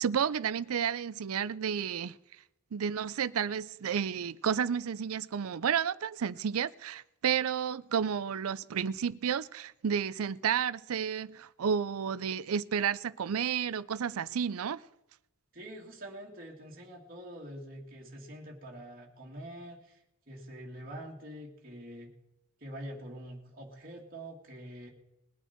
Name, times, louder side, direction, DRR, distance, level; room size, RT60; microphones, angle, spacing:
voice 1, 0.0-2.2 2.7-14.8, right 7 dB, 90° right, 0.5 m, -31 dB
voice 2, 15.5-20.0 20.3-22.1 22.6-24.9, right 1 dB, 40° right, 2.4 m, -45 dB
21.0 x 9.1 x 4.4 m
head